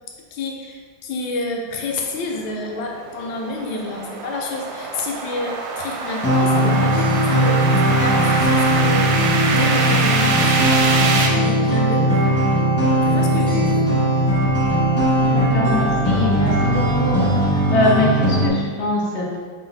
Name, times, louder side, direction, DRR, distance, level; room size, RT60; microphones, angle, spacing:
voice 1, 0.3-12.3 13.0-13.9, left 3 dB, 90° left, 1 dB, 1.4 m, -29 dB
sound 1, 2.2-11.3, right 4 dB, 75° right, 1.3 m, -25 dB
sound 2, 6.2-18.5, right 1 dB, 20° left, 0.3 m, -18 dB
sound 3, 13.5-17.5, right 1 dB, 35° right, 1.3 m, -32 dB
voice 2, 15.3-17.2 17.5-19.4, left 2 dB, 65° left, -3 dB, 0.7 m, -23 dB
3.8 x 3.4 x 3.9 m, 1.6 s
omnidirectional pair, 2.1 m